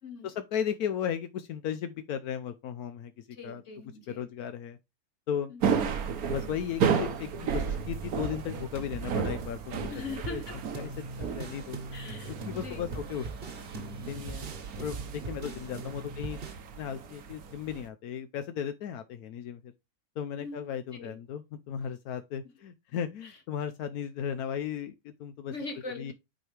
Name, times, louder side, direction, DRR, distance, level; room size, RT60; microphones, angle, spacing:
voice 1, 0.2-3.6 4.1-4.8 5.3-5.5 6.3-10.4 10.7-10.9 11.2-11.8 12.4-13.3 14.1-14.5 14.7-16.4 16.8-19.7 20.2-25.5 26.0-26.1, left 8 dB, 80° left, 1.2 m, -35 dB
voice 2, 3.3-4.3 5.5-5.6 9.9-10.6 11.9-12.9 15.4-15.6 20.4-21.2 23.2-23.4 25.5-26.1, left 3 dB, 55° left, 1.3 m, -42 dB
sound 1, 5.6-17.9, right 6 dB, 70° right, 1.4 m, -34 dB
sound 2, 7.7-16.5, right 3 dB, 40° right, 1.2 m, -41 dB
8.9 x 4.7 x 3.3 m
omnidirectional pair, 1.6 m